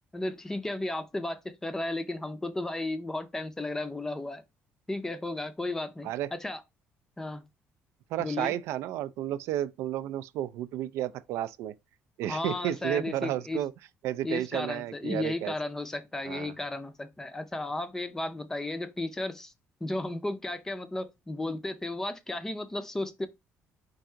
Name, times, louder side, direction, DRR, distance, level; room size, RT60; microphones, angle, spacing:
voice 1, 0.1-4.4 4.9-6.6 7.2-7.4 8.2-8.5 12.3-13.6 14.2-19.5 19.8-23.3, left 2 dB, 10° left, 0.4 m, -34 dB
voice 2, 8.1-11.8 12.2-13.7 14.0-15.5 16.3-16.5, right 12 dB, 80° right, 0.3 m, -32 dB
4.7 x 2.5 x 4.3 m
cardioid pair, 170°, 5 cm